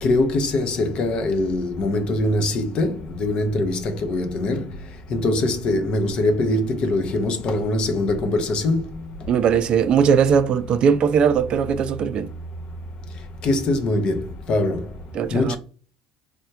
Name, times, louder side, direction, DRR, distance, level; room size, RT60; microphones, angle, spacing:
voice 1, 0.0-4.7 5.1-8.9 13.4-14.8 15.3-15.6, left 2 dB, 50° left, 0.6 m, -22 dB
voice 2, 9.3-12.3 15.1-15.6, right 7 dB, 50° right, 0.4 m, -19 dB
3.2 x 2.1 x 2.7 m
supercardioid pair, 100°, 2 cm